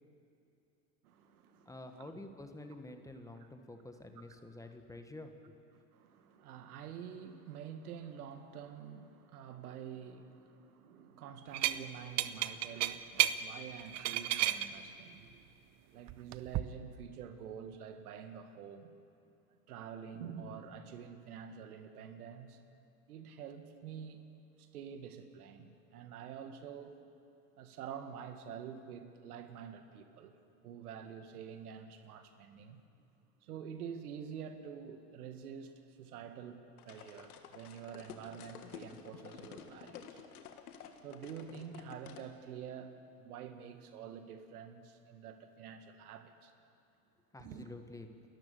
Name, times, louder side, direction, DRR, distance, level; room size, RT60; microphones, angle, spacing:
voice 1, 1.0-2.2 5.9-15.4 15.9-19.0 19.7-22.6 23.1-24.2 24.6-27.0 27.6-30.4 30.6-32.8 33.4-40.2 41.0-46.5 47.4-47.7, right 7 dB, 80° right, 7 dB, 1.9 m, -47 dB
voice 2, 1.6-5.6 47.3-48.1, left 2 dB, 5° left, 6 dB, 1.4 m, -49 dB
sound 1, 11.5-11.8 12.2-13.4 13.8-14.7 16.1-16.6, right 14 dB, 40° right, 0.8 m, -31 dB
sound 2, 36.8-42.3, left 8 dB, 85° left, 1.9 m, -51 dB
30.0 x 13.5 x 7.0 m, 2.7 s
hypercardioid pair, 110°, 44 cm